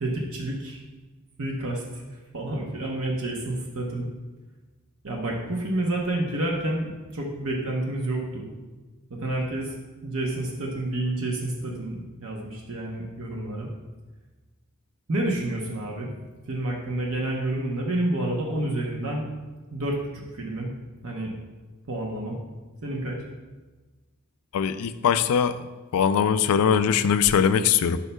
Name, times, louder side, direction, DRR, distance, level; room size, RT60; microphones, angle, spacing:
voice 1, 0.0-0.8 1.4-4.1 5.0-8.5 9.2-9.7 10.0-13.7 15.1-16.1 16.5-19.3 19.7-20.7 21.0-21.3 21.9-22.4 22.8-23.3, right 1 dB, 65° right, -1 dB, 0.9 m, -29 dB
voice 2, 24.5-25.5 25.9-28.0, left 7 dB, 75° left, 13 dB, 0.4 m, -21 dB
11.0 x 5.6 x 2.2 m, 1.3 s
head